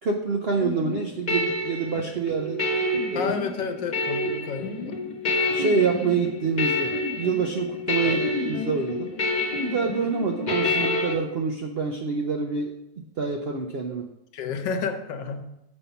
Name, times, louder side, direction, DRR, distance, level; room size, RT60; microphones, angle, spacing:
voice 1, 0.0-2.6 3.1-3.3 5.5-9.1 9.6-12.7 13.2-14.1, right 5 dB, 75° right, 2 dB, 0.5 m, -27 dB
sound 1, 0.6-11.1, left 2 dB, 30° left, 1.1 m, -28 dB
voice 2, 3.1-5.0 8.0-8.3 14.3-15.4, left 5 dB, 80° left, 7 dB, 1.5 m, -31 dB
6.7 x 5.4 x 5.6 m, 0.87 s
omnidirectional pair, 1.9 m